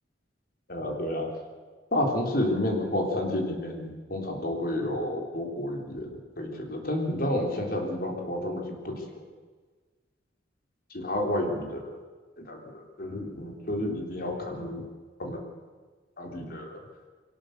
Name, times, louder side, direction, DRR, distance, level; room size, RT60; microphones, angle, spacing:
voice 1, 0.7-1.3 1.9-9.3 10.9-11.9 12.4-14.9 15.2-15.4 16.2-16.8, left 1 dB, 50° left, 2 dB, 3.6 m, -30 dB
22.5 x 18.5 x 6.6 m, 1.4 s
head